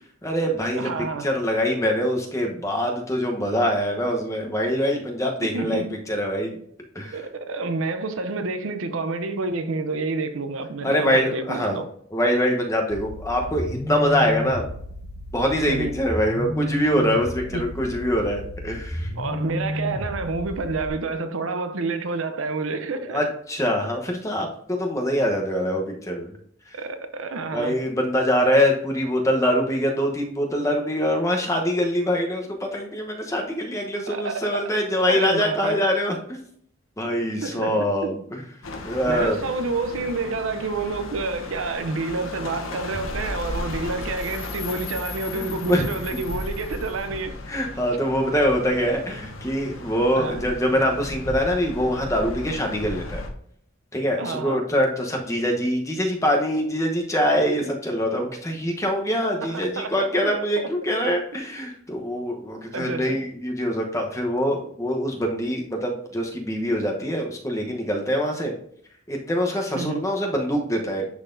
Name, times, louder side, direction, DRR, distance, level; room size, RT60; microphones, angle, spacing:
voice 1, 0.2-0.9 1.2-6.6 6.9-7.2 10.8-11.8 12.1-14.6 15.3-19.1 23.1-26.4 26.7-26.8 27.5-36.4 37.0-38.4 38.8-39.4 45.3-45.8 47.5-53.2 53.9-68.5 69.1-71.1, equal, 15° left, 0.9 m, -24 dB
voice 2, 0.7-1.3 5.4-5.9 7.1-11.9 15.7-15.9 17.5-17.6 19.2-23.2 26.7-27.8 34.1-34.5 35.1-35.8 37.4-38.1 39.0-47.4 50.2-50.4 54.2-54.6 59.5-60.9 62.7-63.2 69.8-70.0, right 3 dB, 80° right, 0.6 m, -29 dB
sound 1, 12.9-20.9, left 1 dB, 50° left, 0.8 m, -32 dB
sound 2, 38.6-53.3, left 2 dB, 85° left, 0.9 m, -35 dB
10.5 x 4.1 x 2.6 m
head